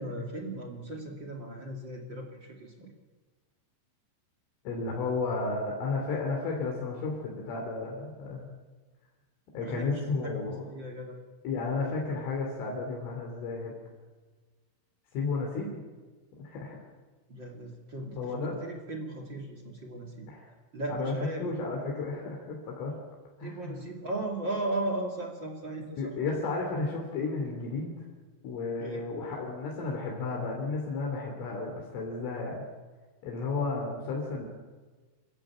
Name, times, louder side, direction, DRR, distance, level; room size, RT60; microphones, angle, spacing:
voice 1, 0.0-2.9 9.6-11.2 17.3-20.3 20.7-21.5 23.4-26.1 28.8-29.0, right 2 dB, 35° right, 3 dB, 2.1 m, -37 dB
voice 2, 4.7-8.5 9.5-10.7 11.5-13.8 15.1-15.8 16.4-16.8 18.2-18.6 20.3-20.5 20.9-23.0 23.4-23.8 26.0-27.9 28.4-32.6 33.2-34.5, left 3 dB, 80° left, -1 dB, 5.5 m, -33 dB
28.0 x 14.5 x 8.7 m, 1.3 s
omnidirectional pair, 5.6 m